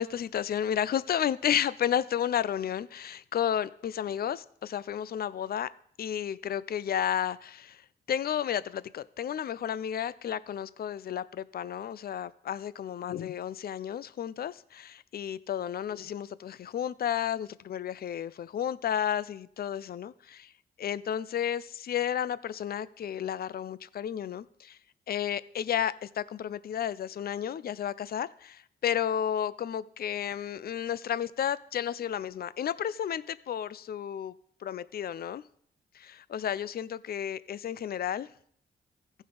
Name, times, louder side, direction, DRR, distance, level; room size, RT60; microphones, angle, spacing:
voice 1, 0.0-5.7 6.0-7.8 8.1-20.5 20.8-24.8 25.1-34.3 34.6-35.4 35.9-38.3, left 9 dB, 50° left, 17 dB, 0.4 m, -32 dB
15.0 x 5.4 x 3.4 m, 0.63 s
supercardioid pair, 55°, 20 cm